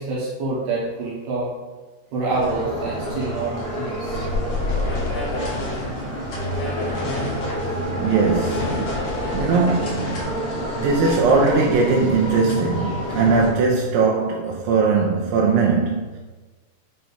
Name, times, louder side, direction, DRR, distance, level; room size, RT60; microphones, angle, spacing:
voice 1, 0.0-1.5 2.1-4.2 6.3-6.4, right 3 dB, 65° right, 2.2 m, -27 dB
sound 1, 2.3-13.5, equal, 75° left, 1.3 m, -28 dB
sound 2, 4.4-10.2, left 2 dB, 60° left, 3.3 m, -31 dB
voice 2, 8.0-10.2 10.8-16.2, right 4 dB, 80° right, 3.0 m, -20 dB
8.9 x 3.0 x 5.1 m
omnidirectional pair, 5.4 m